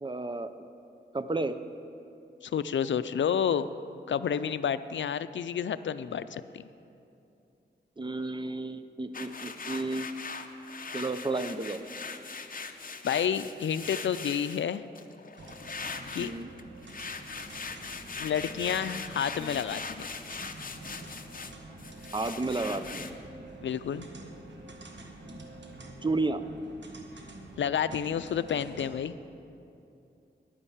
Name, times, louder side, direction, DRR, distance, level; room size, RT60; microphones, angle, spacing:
voice 1, 0.0-0.5 1.1-1.6 8.0-10.1 10.9-11.8 16.2-16.5 22.1-23.2 26.0-26.4, right 2 dB, 25° right, 10 dB, 0.6 m, -32 dB
voice 2, 2.4-3.7 4.1-6.6 13.0-14.8 16.1-16.3 18.2-20.1 23.6-24.1 27.6-29.1, left 8 dB, 85° left, 14 dB, 0.4 m, -30 dB
sound 1, 9.1-14.6 15.0-21.5 21.8-23.1, left 4 dB, 50° left, 0.7 m, -41 dB
sound 2, 15.4-28.9, right 2 dB, 75° right, 1.4 m, -47 dB
11.0 x 9.8 x 7.3 m, 2.7 s
wide cardioid pair, 75°, 19 cm